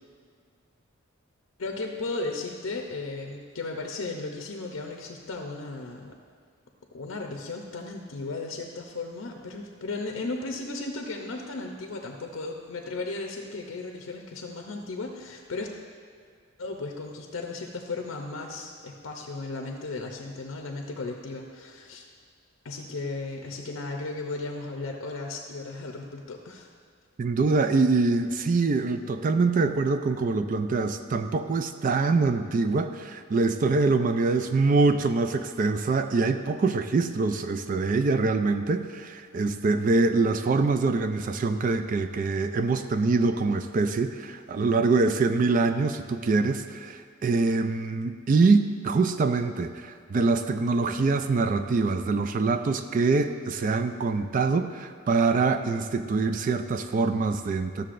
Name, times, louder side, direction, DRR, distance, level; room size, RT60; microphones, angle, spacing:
voice 1, 1.6-6.2 6.9-15.7 16.6-22.1 22.6-26.7, left 3 dB, 85° left, 2 dB, 0.7 m, -35 dB
voice 2, 27.2-57.8, right 3 dB, 40° right, 8 dB, 0.3 m, -24 dB
12.5 x 6.5 x 2.5 m, 2.1 s
head